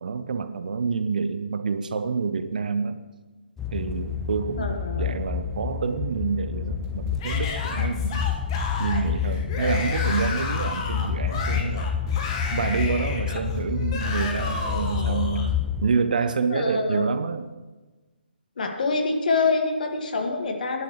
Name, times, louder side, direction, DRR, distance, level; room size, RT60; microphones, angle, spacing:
voice 1, 0.0-3.0 3.7-8.2 8.8-11.9 12.5-15.5 15.8-17.5, right 5 dB, 50° right, 11 dB, 0.9 m, -27 dB
sound 1, 3.6-15.9, left 8 dB, 5° left, 0.4 m, -29 dB
voice 2, 4.6-5.0 16.5-17.1 18.6-20.8, left 3 dB, 50° left, 3 dB, 2.0 m, -25 dB
sound 2, 6.8-14.6, right 1 dB, 20° right, 1.8 m, -44 dB
Yell / Screaming, 7.2-15.5, left 4 dB, 30° left, 1.5 m, -33 dB
21.0 x 11.0 x 3.2 m, 1.2 s
figure-of-eight pair, 140°, 6 cm